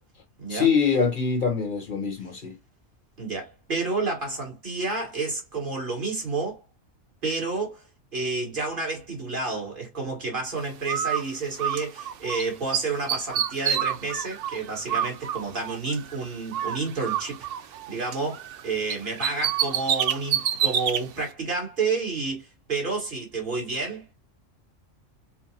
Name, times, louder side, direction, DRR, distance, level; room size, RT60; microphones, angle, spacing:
voice 1, 0.5-2.5, left 6 dB, 45° left, 1.1 m, -24 dB
voice 2, 3.2-6.6 7.2-7.8 8.1-17.5 17.9-24.1, right 3 dB, 45° right, 1.8 m, -30 dB
Bird, 10.9-12.4 12.7-16.2 16.5-18.6 18.9-21.0, right 9 dB, 60° right, 0.6 m, -28 dB
4.5 x 2.1 x 2.8 m
omnidirectional pair, 1.3 m